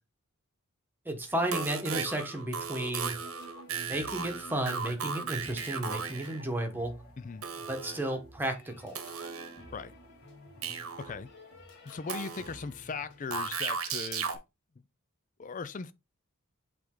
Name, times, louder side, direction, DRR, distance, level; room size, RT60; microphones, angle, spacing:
voice 1, 1.0-3.2 3.7-6.9 7.7-8.9, right 1 dB, 10° right, 1.2 m, -33 dB
sound 1, 1.3-6.4 7.4-8.3 8.9-9.8 10.6-11.3 12.1-12.7 13.3-14.4, right 6 dB, 90° right, 1.2 m, -36 dB
sound 2, 2.8-13.7, equal, 55° left, 2.2 m, -53 dB
voice 2, 7.2-7.5 9.7-9.9 11.0-11.3 11.9-14.4 15.4-15.9, left 5 dB, 35° left, 0.4 m, -39 dB
8.0 x 3.4 x 3.8 m
head